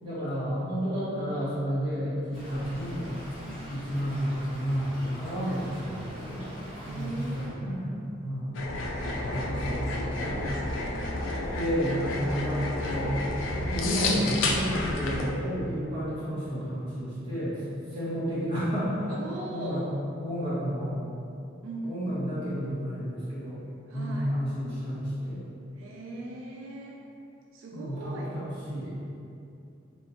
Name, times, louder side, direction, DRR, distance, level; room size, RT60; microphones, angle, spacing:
voice 1, 0.0-3.2 3.7-6.5 6.8-7.1 7.3-8.7 9.3-9.9 10.2-10.5 11.5-13.3 13.6-17.6 17.9-19.1 19.5-19.8 20.2-21.0 21.8-23.6 23.9-25.4 27.7-29.0, equal, 25° right, -12 dB, 1.2 m, -31 dB
Stream / Trickle dribble, 2.3-7.5, equal, 25° left, 0.9 m, -43 dB
voice 2, 3.4-3.7 5.4-6.1 6.8-7.6 9.1-11.1 13.7-14.1 19.1-19.9 21.6-22.0 23.9-24.3 25.7-27.1 27.5-28.4, right 2 dB, 85° right, -2 dB, 0.4 m, -40 dB
sound 1, 8.5-15.3, left 2 dB, 80° left, 0.4 m, -30 dB
3.6 x 2.5 x 2.8 m, 2.6 s
head